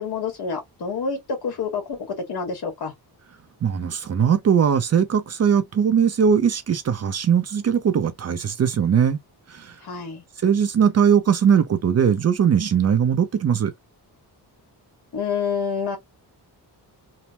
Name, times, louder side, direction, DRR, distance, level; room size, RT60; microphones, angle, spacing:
voice 1, 0.0-2.9 9.8-10.2 15.1-16.0, left 5 dB, 70° left, 1.5 m, -28 dB
voice 2, 3.6-9.2 9.5-9.7 10.4-13.7, right 7 dB, 40° right, 0.5 m, -20 dB
3.2 x 2.1 x 2.8 m
wide cardioid pair, 145°, 40 cm